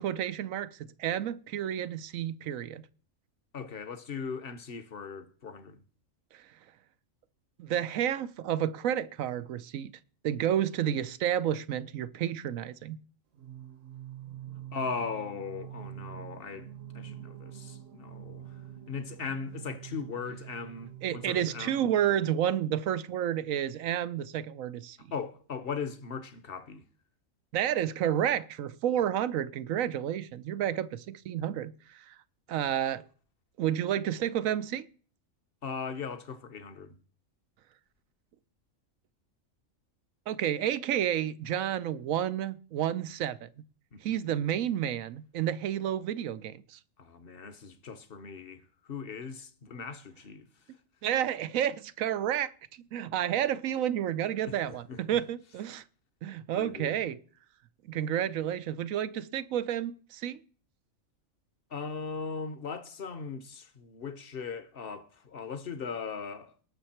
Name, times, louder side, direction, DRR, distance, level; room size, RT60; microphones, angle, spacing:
voice 1, 0.0-2.8 6.3-6.4 7.6-9.9 10.2-13.0 21.0-25.0 27.5-32.1 32.5-33.0 33.6-34.9 40.3-43.5 44.0-46.8 51.0-52.5 52.8-55.8 56.2-57.2 57.9-60.4, right 10 dB, 85° right, 1.1 m, -30 dB
voice 2, 3.5-5.8 14.7-18.6 18.9-21.9 25.1-26.8 35.6-37.0 43.9-44.0 44.5-44.6 47.0-50.5 54.5-55.2 56.5-57.0 61.7-66.5, left 5 dB, 50° left, 1.2 m, -39 dB
Singing, 13.3-22.3, right 11 dB, 70° right, 1.3 m, -45 dB
19.0 x 6.7 x 4.4 m
omnidirectional pair, 1.4 m